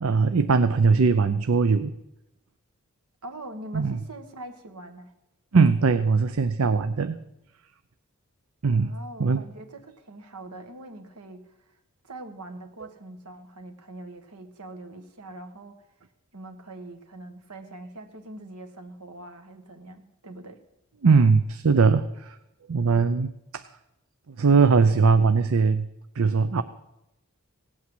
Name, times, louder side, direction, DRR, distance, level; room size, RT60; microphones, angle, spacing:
voice 1, 0.0-1.9 3.7-4.0 5.5-7.2 8.6-9.4 21.0-22.4 22.7-23.6 24.4-25.9 26.2-26.6, right 4 dB, 70° right, 11 dB, 0.6 m, -20 dB
voice 2, 3.2-5.1 8.7-11.8 12.0-15.8 16.3-20.6, right 1 dB, 90° right, 6 dB, 1.6 m, -43 dB
17.0 x 8.6 x 7.8 m, 0.89 s
head